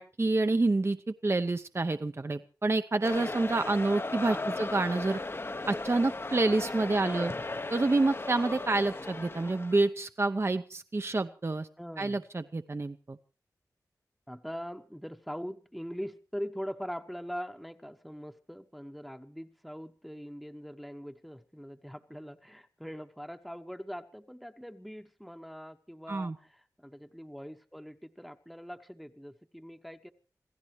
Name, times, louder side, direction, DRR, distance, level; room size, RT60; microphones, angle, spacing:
voice 1, 0.0-5.2 5.7-7.3 7.7-11.7 12.0-13.2 26.1-26.4, right 2 dB, 40° right, 9 dB, 0.7 m, -28 dB
sound 1, 3.0-9.8, left 2 dB, 35° left, 0.8 m, -37 dB
voice 2, 4.2-4.5 7.0-7.4 11.8-12.3 14.3-30.1, equal, ahead, 6 dB, 1.0 m, -42 dB
26.5 x 15.5 x 3.2 m, 0.36 s
cardioid pair, 45°, 7 cm